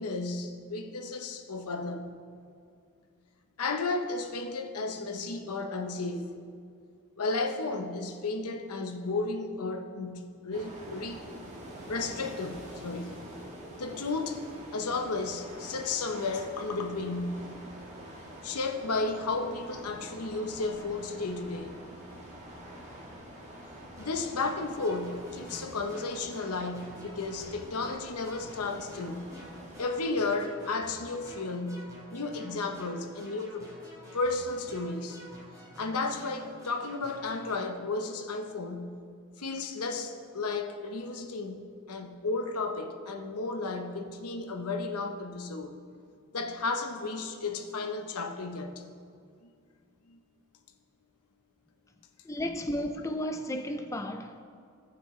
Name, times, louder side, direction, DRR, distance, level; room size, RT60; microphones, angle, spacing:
voice 1, 0.0-2.1 3.6-6.3 7.2-11.2 11.9-13.2 13.8-14.4 14.7-17.5 18.4-21.8 24.0-29.3 29.8-33.7 34.1-35.2 35.8-39.0 39.4-45.7 46.3-48.8 50.1-50.2, left 3 dB, 85° left, 0.9 m, -33 dB
sound 1, 10.5-29.9, right 1 dB, 30° right, 1.4 m, -46 dB
sound 2, 24.0-37.7, equal, 15° right, 2.5 m, -49 dB
voice 2, 52.2-54.4, left 1 dB, 15° left, 0.4 m, -33 dB
18.0 x 6.1 x 3.2 m
head